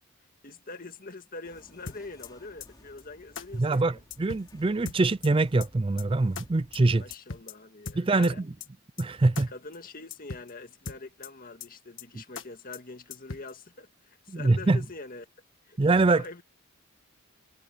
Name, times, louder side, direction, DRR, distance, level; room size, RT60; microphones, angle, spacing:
voice 1, 0.4-4.0 7.0-8.4 9.5-15.3 15.7-15.8 16.1-16.4, left 3 dB, 40° left, 1.9 m, -44 dB
sound 1, 1.4-7.2, left 1 dB, 20° left, 3.8 m, -57 dB
sound 2, 1.9-2.3 2.6-2.7 3.0-3.1 3.3-3.5 3.7-3.8 4.1-4.5 4.8-5.3 5.6-5.7 6.0-6.1 6.3-6.4 6.7-6.8 7.1-7.5 7.8-8.3 8.6-8.7 9.0-9.1 9.3-9.5 9.7-9.8 10.1-10.5 10.8-11.3 11.6-11.7 12.0-12.1 12.3-12.5 12.7-12.8 13.1-13.5, left 5 dB, 60° left, 1.5 m, -39 dB
voice 2, 3.6-7.0 8.0-8.3 9.0-9.5 14.3-14.8 15.8-16.2, right 3 dB, 25° right, 0.4 m, -24 dB
head